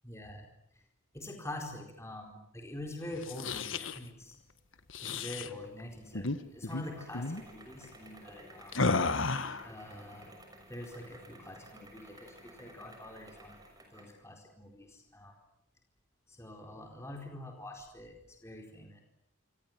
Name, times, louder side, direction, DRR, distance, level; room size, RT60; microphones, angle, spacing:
voice 1, 0.0-0.5 0.7-0.8 1.1-4.4 5.0-8.7 9.6-10.3 10.7-13.6 13.9-15.4 16.3-19.0, left 1 dB, 15° left, 2 dB, 4.3 m, -45 dB
sound 1, 3.1-4.0 4.9-5.5 6.1-6.4 6.6-6.8 7.1-7.4 8.7-9.7, left 3 dB, 70° left, 1.6 m, -32 dB
sound 2, 5.4-14.2, right 1 dB, 20° right, 6.3 m, -55 dB
27.5 x 26.5 x 7.6 m, 0.76 s
head